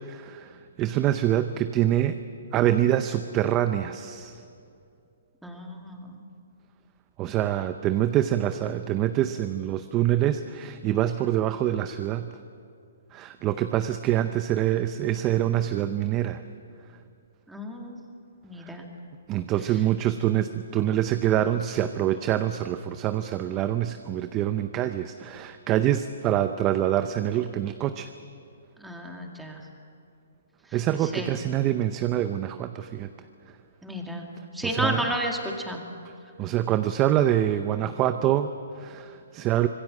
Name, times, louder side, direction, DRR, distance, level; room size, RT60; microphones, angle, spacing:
voice 1, 0.0-2.2 2.5-4.4 7.2-12.3 13.1-16.4 18.6-18.8 19.3-28.1 30.7-33.1 34.6-35.0 36.4-39.7, right 12 dB, 20° right, 10 dB, 0.6 m, -25 dB
voice 2, 5.4-6.2 17.5-18.0 18.4-18.9 28.8-29.6 31.0-31.4 33.8-35.8, equal, ahead, 1 dB, 2.2 m, -32 dB
25.5 x 20.5 x 7.6 m, 2.5 s
hypercardioid pair, 160°, 0 cm